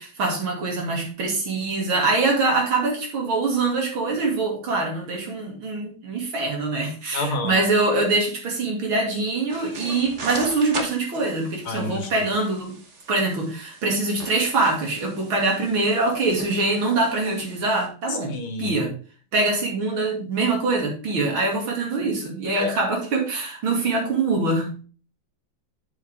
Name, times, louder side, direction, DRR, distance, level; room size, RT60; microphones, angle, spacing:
voice 1, 0.0-12.7 13.1-18.9 19.3-24.7, right 3 dB, 75° right, 1 dB, 3.4 m, -24 dB
voice 2, 7.1-7.6 11.7-12.1 18.1-18.8 22.6-22.7, left 2 dB, 80° left, 6 dB, 2.3 m, -29 dB
sound 1, 9.5-17.9, right 4 dB, 40° right, 1.4 m, -40 dB
8.0 x 7.4 x 3.5 m, 0.37 s
omnidirectional pair, 2.3 m